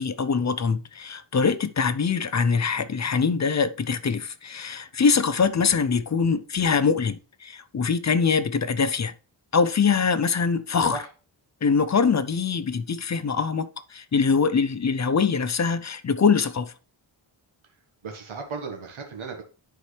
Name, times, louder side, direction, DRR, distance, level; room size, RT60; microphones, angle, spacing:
voice 1, 0.0-9.1 9.5-11.0 11.6-16.7, left 5 dB, 35° left, 0.6 m, -23 dB
voice 2, 18.0-19.4, right 4 dB, 70° right, 1.5 m, -35 dB
10.0 x 4.5 x 3.3 m
wide cardioid pair, 100°, 49 cm